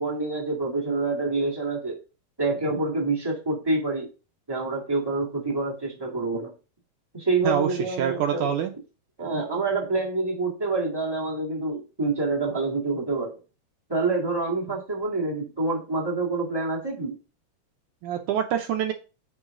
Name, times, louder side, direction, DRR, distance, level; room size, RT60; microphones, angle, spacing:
voice 1, 0.0-2.0 2.4-4.1 4.5-6.5 7.1-8.6 9.2-13.4 13.9-17.1, right 3 dB, 15° right, -2 dB, 0.8 m, -27 dB
voice 2, 7.4-8.7 18.0-18.9, right 9 dB, 75° right, 5 dB, 1.9 m, -26 dB
9.6 x 4.7 x 3.7 m, 0.33 s
omnidirectional pair, 4.0 m